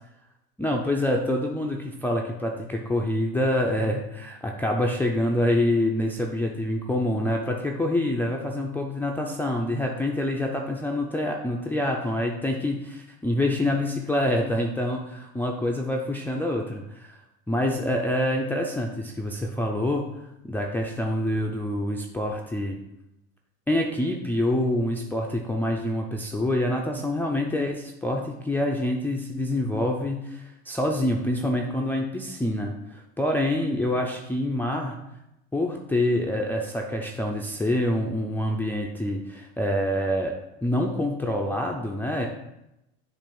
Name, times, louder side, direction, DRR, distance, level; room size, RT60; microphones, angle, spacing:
voice 1, 0.6-17.2 17.5-20.1 20.4-22.8 23.7-35.0 35.5-40.3 40.6-42.3, left 1 dB, 5° left, 0 dB, 0.5 m, -26 dB
7.2 x 2.5 x 5.4 m, 0.86 s
supercardioid pair, 110°, 34 cm